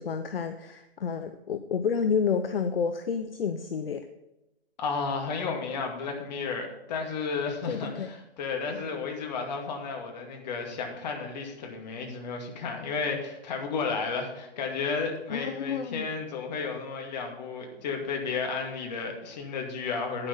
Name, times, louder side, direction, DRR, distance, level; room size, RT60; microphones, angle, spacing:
voice 1, 0.0-4.1 7.6-8.1 15.3-16.1, left 6 dB, 65° left, 9 dB, 0.7 m, -30 dB
voice 2, 4.8-20.3, left 5 dB, 40° left, 2 dB, 2.2 m, -33 dB
9.9 x 9.8 x 3.9 m, 0.94 s
figure-of-eight pair, 130°, 32 cm